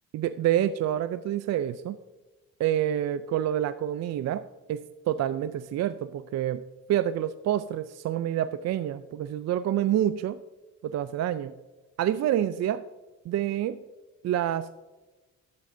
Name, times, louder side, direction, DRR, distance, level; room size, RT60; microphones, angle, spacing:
voice 1, 0.1-2.0 2.6-4.4 4.7-6.6 6.9-10.4 10.8-11.5 12.0-12.8 13.3-13.8 14.2-14.7, right 11 dB, 60° right, 12 dB, 0.4 m, -27 dB
13.5 x 8.6 x 2.6 m, 1.2 s
cardioid pair, 90°, 30 cm